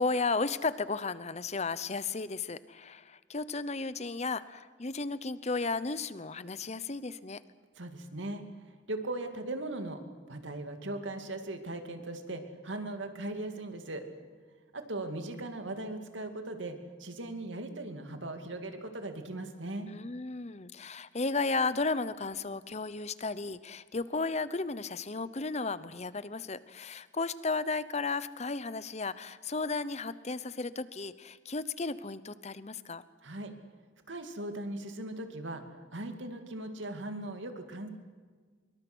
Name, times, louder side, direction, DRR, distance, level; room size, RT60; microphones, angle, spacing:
voice 1, 0.0-7.4 19.9-33.0, left 3 dB, 35° left, 16 dB, 0.8 m, -34 dB
voice 2, 7.8-8.4 8.9-10.0 10.3-14.1 14.7-19.9 33.2-33.5 34.1-35.6 35.9-37.9, right 2 dB, 70° right, 6 dB, 2.5 m, -39 dB
25.5 x 23.0 x 6.3 m, 1.5 s
head